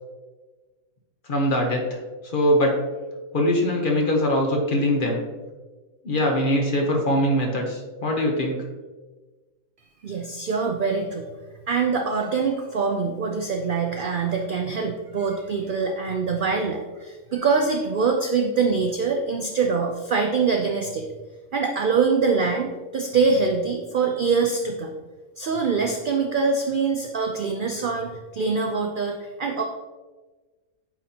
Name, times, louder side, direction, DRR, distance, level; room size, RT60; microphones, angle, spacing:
voice 1, 1.3-2.0 2.3-2.8 3.3-5.2 6.0-8.6, equal, 40° left, 1 dB, 0.9 m, -22 dB
voice 2, 10.0-11.2 11.7-21.1 21.5-24.9 25.4-29.6, right 4 dB, 75° right, 3 dB, 0.4 m, -24 dB
8.6 x 4.2 x 2.8 m, 1.3 s
omnidirectional pair, 1.5 m